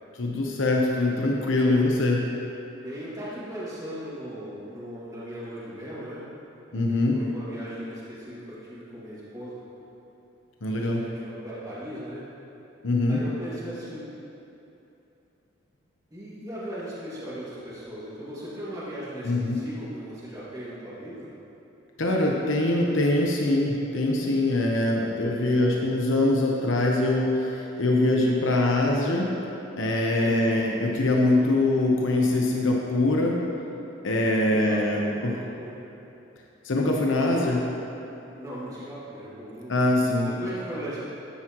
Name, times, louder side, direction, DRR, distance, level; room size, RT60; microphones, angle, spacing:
voice 1, 0.2-2.2 6.7-7.2 10.6-11.0 12.8-13.2 19.2-19.6 22.0-29.3 29.8-33.4 34.0-35.3 36.6-37.6 39.7-40.3, left 2 dB, 85° left, -1 dB, 1.0 m, -23 dB
voice 2, 2.8-6.2 7.1-9.6 10.7-12.2 13.1-14.2 16.1-21.3 25.3-25.8 30.2-30.7 34.4-35.8 38.1-39.9 40.2-41.0, equal, 20° right, -10 dB, 2.3 m, -38 dB
12.5 x 9.8 x 3.1 m, 2.9 s
head